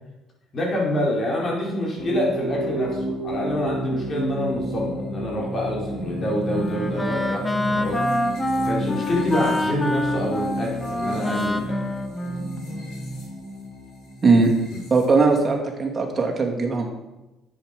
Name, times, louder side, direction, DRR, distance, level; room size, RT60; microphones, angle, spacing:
voice 1, 0.5-8.0 8.6-11.8 14.7-14.8, left 1 dB, 40° left, -2 dB, 4.5 m, -27 dB
sound 1, 2.0-15.5, equal, 75° left, 3.6 m, -31 dB
Wind instrument woodwind instrument, 6.0-13.1, left 1 dB, 15° left, 1.1 m, -27 dB
voice 2, 14.2-14.5 14.9-16.9, right 4 dB, 30° right, 0 dB, 2.8 m, -19 dB
10.5 x 8.5 x 5.3 m, 1.0 s
cardioid pair, 105°, 0 cm